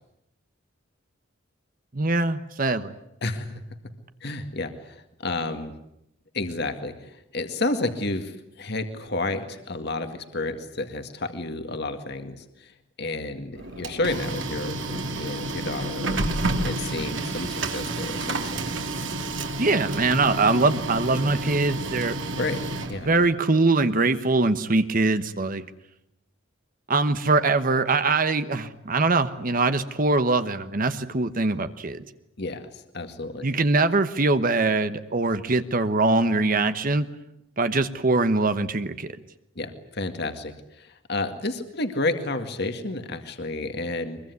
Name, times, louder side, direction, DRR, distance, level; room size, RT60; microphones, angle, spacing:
voice 1, 1.9-2.9 19.6-22.2 23.0-25.6 26.9-32.0 33.4-37.1 37.6-39.1, right 3 dB, 45° right, 10 dB, 1.2 m, -22 dB
voice 2, 3.2-3.6 4.2-5.7 6.3-12.7 13.0-16.2 16.6-18.6 22.4-22.6 22.9-23.1 32.4-33.5 39.6-44.2, left 2 dB, 55° left, 7 dB, 2.0 m, -31 dB
Printer, 13.6-23.3, right 2 dB, 65° right, 3.0 m, -30 dB
23.5 x 22.5 x 9.6 m, 0.82 s
head